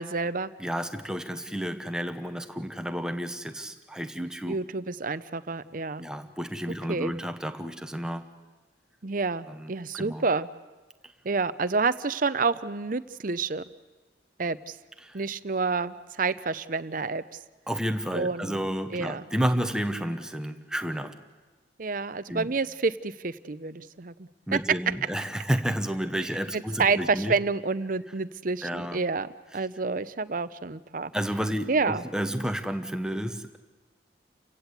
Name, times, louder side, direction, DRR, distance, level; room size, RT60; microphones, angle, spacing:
voice 1, 0.0-0.5 4.5-6.1 6.9-7.1 9.0-10.5 11.2-13.6 14.4-14.8 15.1-17.4 18.1-18.6 18.9-19.2 21.8-24.6 26.5-29.3 29.5-31.1 31.7-32.0, right 4 dB, 45° right, 14 dB, 0.7 m, -29 dB
voice 2, 0.6-4.6 6.0-8.3 9.5-10.2 15.0-15.2 17.7-21.2 22.3-22.5 24.5-27.4 28.6-29.0 31.1-33.6, equal, 5° right, 7 dB, 1.1 m, -31 dB
29.0 x 16.5 x 8.3 m, 1.3 s
head